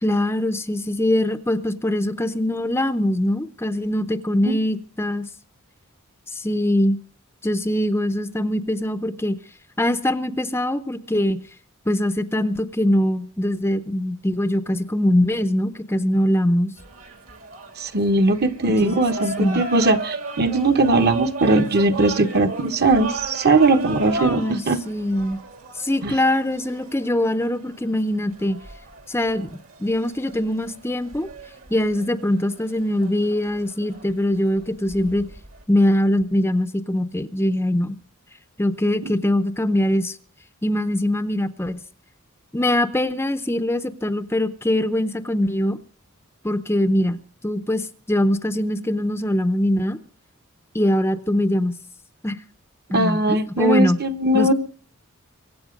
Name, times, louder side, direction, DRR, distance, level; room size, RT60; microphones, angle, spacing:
voice 1, 0.0-5.3 6.3-7.0 7.4-9.3 9.8-11.4 11.9-16.7 18.8-19.0 19.4-19.6 24.2-25.4 25.8-28.6 29.1-29.5 29.8-31.3 31.7-35.3 35.7-38.0 38.6-40.2 40.6-41.8 42.5-45.8 46.4-47.2 47.4-50.0 50.7-51.8 52.2-52.4 52.9-54.0 54.3-54.5, left 1 dB, 10° left, 11 dB, 0.7 m, -22 dB
sound 1, 16.8-35.6, right 3 dB, 70° right, 2.8 m, -36 dB
voice 2, 17.8-24.8 26.0-26.1 39.0-39.1 52.9-54.5, right 2 dB, 50° right, 8 dB, 1.2 m, -19 dB
23.5 x 8.7 x 5.2 m, 0.43 s
head